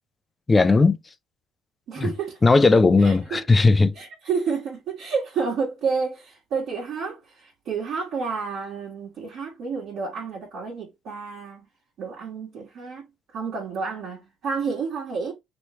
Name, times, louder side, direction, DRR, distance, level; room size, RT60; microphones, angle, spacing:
voice 1, 0.5-1.0 2.0-2.1 2.4-3.9, left 3 dB, 20° left, 0.5 m, -17 dB
voice 2, 1.9-2.4 3.0-3.5 3.9-11.6 12.0-13.0 13.3-15.3, right 5 dB, 65° right, 1.5 m, -30 dB
3.2 x 3.1 x 3.1 m
cardioid pair, 100°, 0 cm